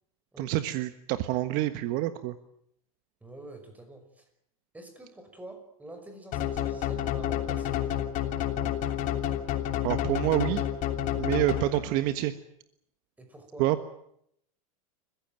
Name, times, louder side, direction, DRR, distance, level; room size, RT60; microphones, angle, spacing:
voice 1, 0.4-2.3 9.8-10.6 11.2-12.3 13.6-13.8, right 15 dB, 50° right, 10 dB, 1.4 m, -27 dB
voice 2, 3.2-4.2 4.7-8.1 13.2-13.7, right 1 dB, 10° right, 6 dB, 5.6 m, -47 dB
sound 1, 6.3-12.1, left 11 dB, 45° left, 3.1 m, -30 dB
28.5 x 15.5 x 9.0 m, 0.75 s
supercardioid pair, 130°, 18 cm